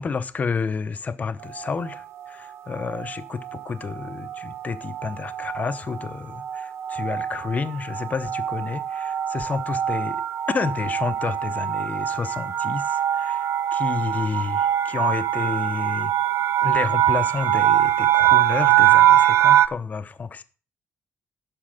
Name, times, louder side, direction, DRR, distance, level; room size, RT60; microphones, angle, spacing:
voice 1, 0.0-10.2 10.5-16.1 16.6-20.4, left 5 dB, 35° left, 0.9 m, -30 dB
sound 1, 1.5-2.0 2.8-3.1 3.4-3.6 3.9-19.7, right 12 dB, 75° right, 0.6 m, -23 dB
11.5 x 4.7 x 7.6 m
cardioid pair, 140°, 5 cm